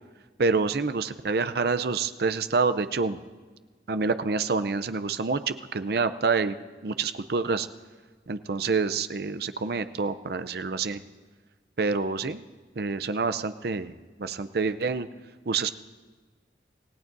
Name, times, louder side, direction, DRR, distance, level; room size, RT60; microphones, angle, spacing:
voice 1, 0.4-3.2 3.9-6.6 6.8-7.7 8.3-11.0 11.8-12.4 12.8-15.1 15.5-15.7, right 4 dB, 60° right, 12 dB, 0.6 m, -27 dB
27.0 x 16.5 x 2.7 m, 1.4 s
head